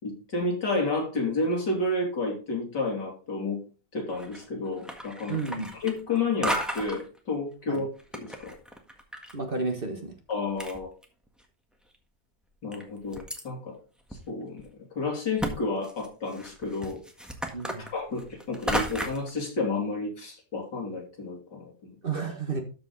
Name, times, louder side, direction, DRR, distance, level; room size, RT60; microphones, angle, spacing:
voice 1, 0.0-3.6 3.9-5.4 5.7-7.9 8.1-8.6 10.3-10.9 12.6-13.8 14.3-14.7 15.0-17.0 17.8-22.0, left 3 dB, 75° left, -1 dB, 4.0 m, -31 dB
sound 1, 4.1-4.5 4.8-6.2 6.4-7.0 7.7-9.3 9.6-9.7 10.3-10.4 10.6-11.4 11.9-12.0 12.7-13.4 14.1-14.2 14.6-14.7 15.4-15.5 15.8-19.3, equal, ahead, 1.4 m, -33 dB
voice 2, 5.3-5.7 7.7-7.8 9.3-10.1 17.5-17.9 22.0-22.6, right 4 dB, 35° right, 4 dB, 1.5 m, -31 dB
13.0 x 5.3 x 4.0 m, 0.34 s
omnidirectional pair, 1.9 m